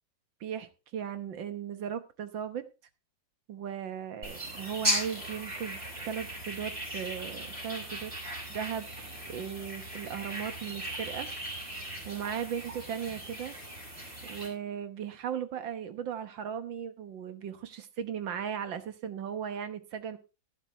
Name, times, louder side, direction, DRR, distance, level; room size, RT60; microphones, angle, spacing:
voice 1, 0.4-2.6 3.5-8.1 8.5-8.9 9.3-11.3 12.1-13.5 14.3-20.2, right 8 dB, 85° right, 10 dB, 1.9 m, -37 dB
sound 1, 4.2-14.5, equal, 30° right, 5.1 m, -37 dB
12.5 x 11.0 x 3.4 m, 0.29 s
omnidirectional pair, 2.0 m